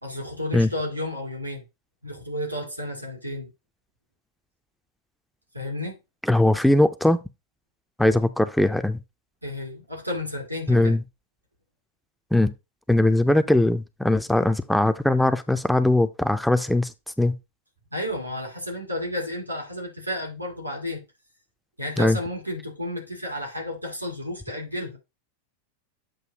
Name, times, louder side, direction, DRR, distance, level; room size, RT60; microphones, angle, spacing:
voice 1, 0.0-1.6 2.0-3.5 5.5-6.0 9.4-11.0 17.9-21.0 21.8-25.0, left 1 dB, 85° right, 2.5 m, -32 dB
voice 2, 6.2-7.2 8.0-9.0 10.7-11.0 12.3-12.5 12.9-16.9 17.2-17.4 22.0-22.2, left 1 dB, ahead, 0.4 m, -20 dB
7.8 x 2.6 x 4.9 m
figure-of-eight pair, 90°, 0 cm